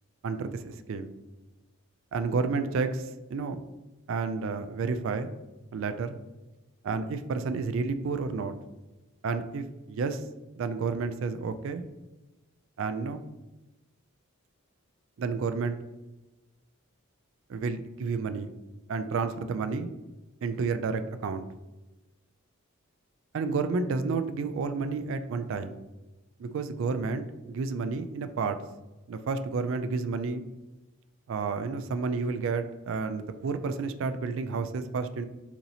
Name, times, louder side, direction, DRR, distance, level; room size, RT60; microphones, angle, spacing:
voice 1, 0.2-1.1 2.1-3.6 4.1-5.3 5.7-6.2 6.8-8.5 9.2-10.2 10.6-11.8 12.8-13.3 15.2-15.8 17.5-18.5 18.9-19.9 20.4-21.5 23.3-25.8 26.4-28.6 29.1-30.4 31.3-35.2, right 4 dB, 60° right, 10 dB, 0.3 m, -31 dB
6.8 x 2.8 x 2.7 m, 1.1 s
head